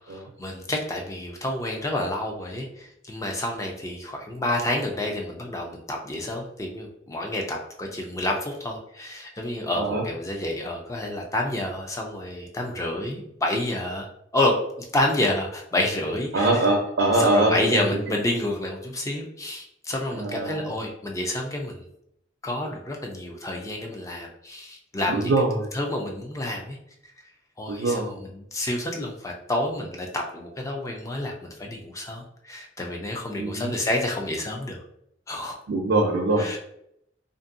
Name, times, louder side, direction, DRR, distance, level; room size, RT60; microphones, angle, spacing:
voice 1, 0.1-16.7 17.1-21.9 22.4-25.4 25.7-26.8 27.6-34.8 35.3-35.6 36.4-36.6, left 1 dB, 20° left, 1 dB, 0.4 m, -29 dB
voice 2, 16.3-17.8 20.2-20.7 25.1-25.7 27.7-28.1 33.4-33.7 35.7-36.6, right 2 dB, 80° right, 1 dB, 0.5 m, -23 dB
2.6 x 2.6 x 2.5 m, 0.75 s
head